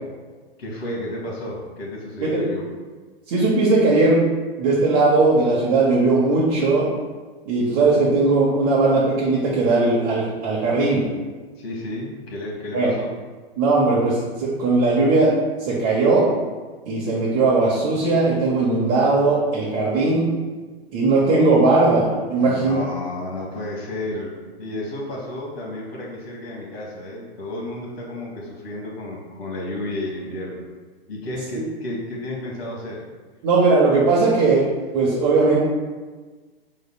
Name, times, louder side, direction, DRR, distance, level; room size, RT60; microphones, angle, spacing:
voice 1, 0.6-2.7 11.6-13.1 22.4-30.6 31.1-33.0, left 1 dB, 70° left, -3 dB, 1.3 m, -32 dB
voice 2, 3.3-4.2 4.6-6.9 7.5-11.0 12.7-12.9 13.6-15.3 15.6-16.3 16.9-20.3 20.9-22.8 33.4-34.7 34.9-35.6, right 3 dB, 40° right, -5 dB, 0.9 m, -18 dB
5.2 x 3.8 x 2.2 m, 1.3 s
hypercardioid pair, 125°, 31 cm